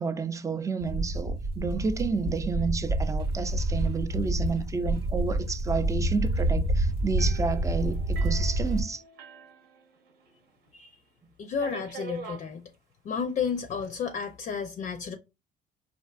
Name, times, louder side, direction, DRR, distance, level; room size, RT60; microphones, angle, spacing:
voice 1, 0.0-9.0, right 4 dB, 20° right, 0.4 m, -30 dB
sound 1, 0.8-8.8, right 1 dB, 90° right, 1.3 m, -28 dB
sound 2, 7.2-10.4 10.7-10.8 11.6-12.5 13.4-13.9, right 4 dB, 70° right, 1.0 m, -44 dB
voice 2, 11.4-12.6 13.0-15.2, left 6 dB, 45° left, 0.5 m, -32 dB
4.4 x 2.6 x 2.4 m
cardioid pair, 110°, 17 cm